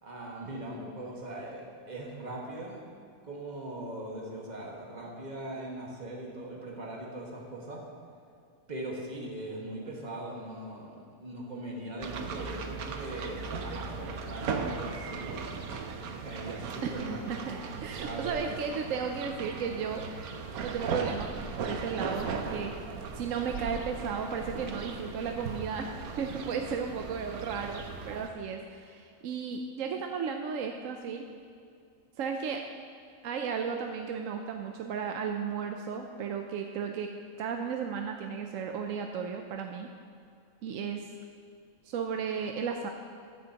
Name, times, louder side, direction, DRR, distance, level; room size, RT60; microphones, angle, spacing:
voice 1, 0.0-2.8 3.2-7.8 8.7-15.6 16.1-17.3 18.0-18.5, right 1 dB, 30° right, -2 dB, 1.7 m, -40 dB
sound 1, 12.0-28.3, right 5 dB, 90° right, 1.3 m, -38 dB
voice 2, 16.8-20.0 20.6-22.7 23.1-31.3 32.2-32.6 33.2-37.1 37.4-39.9 40.6-41.1 41.8-42.9, right 6 dB, 70° right, 4 dB, 1.0 m, -34 dB
14.5 x 10.5 x 2.9 m, 2.4 s
omnidirectional pair, 1.5 m